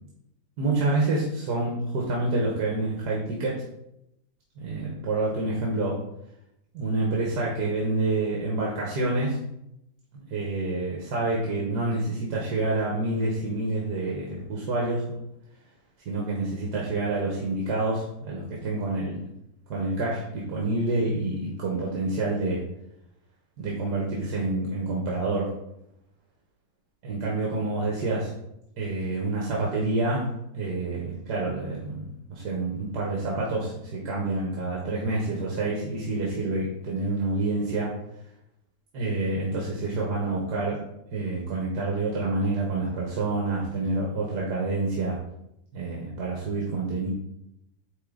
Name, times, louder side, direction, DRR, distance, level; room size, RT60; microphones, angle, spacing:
voice 1, 0.6-3.6 4.6-6.0 6.7-9.4 10.1-15.1 16.0-19.3 19.7-22.7 23.6-25.6 27.0-28.3 28.8-30.3 30.5-38.0 38.9-40.8 41.1-45.2 45.7-47.1, right 2 dB, 65° right, -3 dB, 1.8 m, -28 dB
9.4 x 3.6 x 3.9 m, 0.81 s
omnidirectional pair, 2.0 m